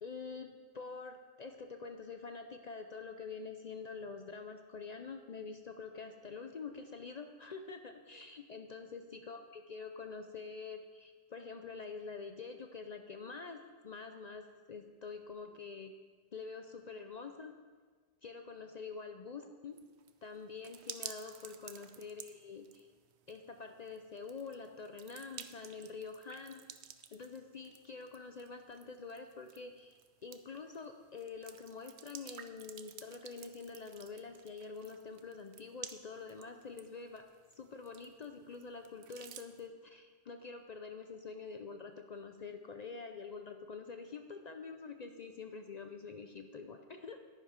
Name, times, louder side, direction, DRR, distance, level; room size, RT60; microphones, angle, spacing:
voice 1, 0.0-15.9 16.3-17.5 18.2-19.8 20.2-22.9 23.3-26.6 27.1-37.3 37.5-47.2, left 4 dB, 65° left, 6 dB, 0.4 m, -46 dB
sound 1, 19.8-39.7, right 9 dB, 60° right, 0.8 m, -53 dB
10.5 x 10.0 x 5.1 m, 1.5 s
omnidirectional pair, 1.4 m